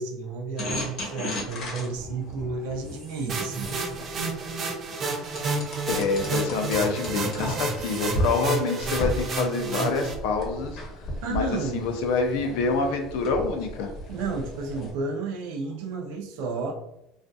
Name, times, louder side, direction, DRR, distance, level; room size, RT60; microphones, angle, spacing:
voice 1, 0.0-3.7 7.2-7.6 11.2-11.9 14.1-16.7, right 3 dB, 80° right, 1 dB, 0.6 m, -32 dB
sound 1, 0.6-4.5 5.4-7.8 8.1-8.3 8.8-14.9, equal, 45° left, 0.8 m, -34 dB
sound 2, 2.8-4.2 7.7-8.5, right 3 dB, 45° right, 0.8 m, -47 dB
sound 3, 3.3-10.1, right 3 dB, 30° right, 0.4 m, -30 dB
voice 2, 5.9-13.9, left 4 dB, 75° left, 4 dB, 0.5 m, -27 dB
2.4 x 2.3 x 2.6 m, 0.84 s
cardioid pair, 155°, 0 cm